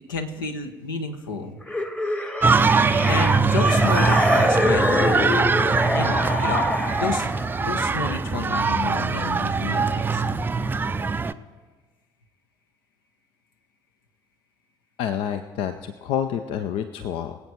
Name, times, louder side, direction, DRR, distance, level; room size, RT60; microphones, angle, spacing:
voice 1, 0.1-1.6 3.1-5.2 5.9-6.6 7.0-7.3 7.6-10.2, left 4 dB, 75° left, 7 dB, 1.1 m, -30 dB
sound 1, 1.7-7.5, left 1 dB, 10° left, 1.2 m, -25 dB
sound 2, 2.4-11.3, right 4 dB, 20° right, 0.5 m, -22 dB
voice 2, 15.0-17.4, left 9 dB, 50° left, 10 dB, 0.6 m, -28 dB
24.0 x 8.3 x 4.4 m, 1.3 s
figure-of-eight pair, 55°, 11 cm